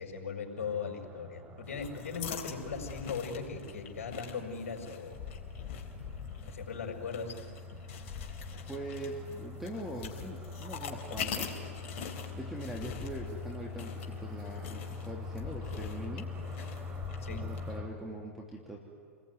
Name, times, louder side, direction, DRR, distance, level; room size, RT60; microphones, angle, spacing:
voice 1, 0.0-5.2 6.5-7.3 17.2-17.4, left 5 dB, 70° left, 3 dB, 5.9 m, -38 dB
sound 1, 0.6-17.9, left 3 dB, 20° right, 4.6 m, -44 dB
sound 2, 1.6-17.8, left 7 dB, 55° left, 4.0 m, -44 dB
voice 2, 8.7-11.6 12.3-16.3 17.3-18.8, right 1 dB, 5° right, -1 dB, 3.3 m, -42 dB
29.5 x 21.0 x 9.5 m, 2.2 s
hypercardioid pair, 105°, 8 cm